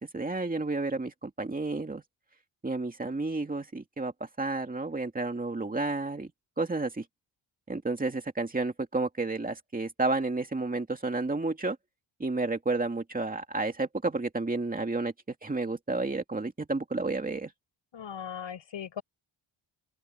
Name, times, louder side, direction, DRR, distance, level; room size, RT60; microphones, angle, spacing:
voice 1, 0.0-2.0 2.6-6.3 6.6-7.1 7.7-11.8 12.2-15.1 15.4-17.5, right 3 dB, 20° right, 2.4 m, -31 dB
voice 2, 17.9-19.0, left 8 dB, 65° left, 7.3 m, -38 dB
open air
wide cardioid pair, 170°, 47 cm